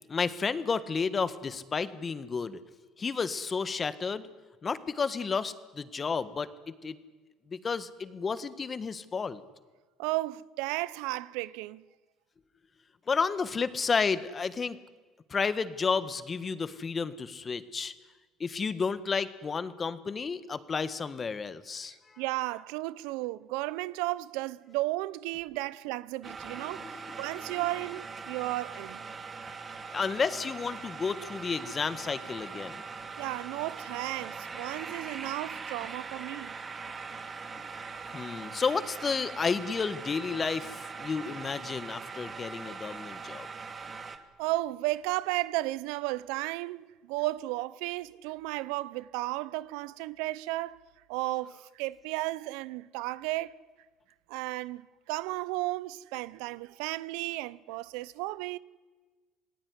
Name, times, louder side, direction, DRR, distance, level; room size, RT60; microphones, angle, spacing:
voice 1, 0.1-2.6 3.0-4.3 4.6-7.0 7.5-9.4 13.1-14.8 15.3-17.9 18.4-22.2 26.6-27.2 29.9-32.8 38.1-43.5, left 5 dB, 30° left, 1.6 m, -31 dB
voice 2, 10.0-11.8 22.2-29.0 33.2-36.5 44.4-50.8 51.1-53.6 54.3-58.6, right 19 dB, 85° right, 0.7 m, -34 dB
sound 1, 26.2-44.2, right 5 dB, 30° right, 2.3 m, -41 dB
27.0 x 18.5 x 9.8 m
supercardioid pair, 100°, 0 cm